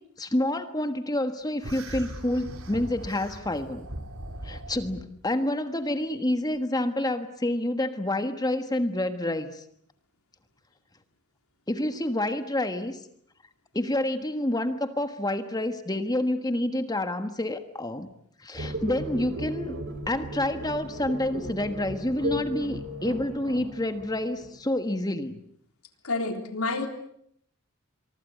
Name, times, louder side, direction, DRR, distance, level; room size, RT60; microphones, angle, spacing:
voice 1, 0.2-3.9 4.4-9.6 11.7-13.0 13.7-18.1 18.4-19.8 20.1-25.4, left 1 dB, 20° left, 9 dB, 1.4 m, -28 dB
sound 1, 1.6-5.0, right 1 dB, 70° right, 3.9 m, -39 dB
sound 2, 18.5-24.8, equal, 55° right, 4.3 m, -36 dB
voice 2, 26.0-26.9, left 3 dB, 75° left, 5 dB, 3.8 m, -28 dB
25.0 x 23.5 x 8.3 m, 0.70 s
head